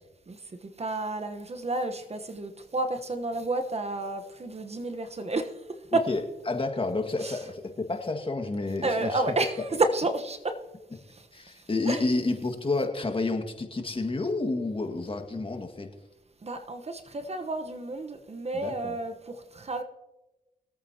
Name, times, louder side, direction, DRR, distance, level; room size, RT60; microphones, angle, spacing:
voice 1, 0.3-6.2 7.2-7.5 8.8-10.6 11.1-12.0 16.4-19.8, right 2 dB, 40° right, 1.1 m, -31 dB
voice 2, 6.5-9.2 11.3-15.9 18.5-19.0, left 3 dB, 35° left, 1.9 m, -30 dB
22.5 x 8.7 x 2.9 m
cardioid pair, 65°, 16 cm